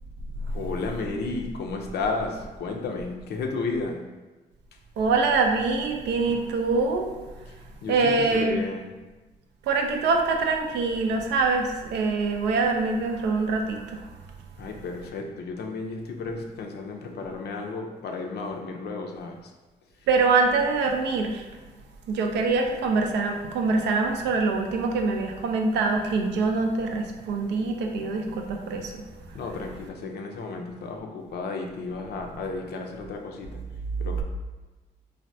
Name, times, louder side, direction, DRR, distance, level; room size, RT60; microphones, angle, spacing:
voice 1, 0.5-4.0 7.5-7.6 7.8-8.9 14.6-19.5 29.3-33.6 34.0-34.2, left 3 dB, 70° left, 2 dB, 0.5 m, -33 dB
voice 2, 5.0-7.1 7.9-8.6 9.7-14.0 20.1-21.4 22.1-29.0, right 4 dB, 85° right, 3 dB, 0.4 m, -24 dB
3.3 x 2.1 x 2.6 m, 1.2 s
supercardioid pair, 55°, 17 cm